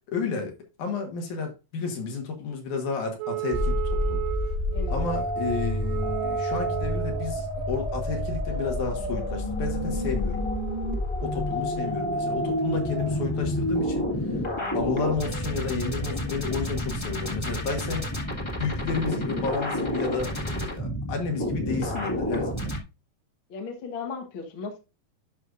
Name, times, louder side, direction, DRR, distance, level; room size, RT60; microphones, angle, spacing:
voice 1, 0.1-4.2 4.9-10.5 11.2-14.1 14.7-18.1 18.6-22.8, left 4 dB, 70° left, 2.8 m, -31 dB
Wind instrument woodwind instrument, 3.2-7.3, right 16 dB, 85° right, 2.2 m, -34 dB
sound 1, 3.5-22.8, left 1 dB, 25° left, 0.6 m, -29 dB
voice 2, 23.5-24.8, left 4 dB, 50° left, 1.7 m, -36 dB
12.0 x 5.4 x 2.5 m
omnidirectional pair, 3.7 m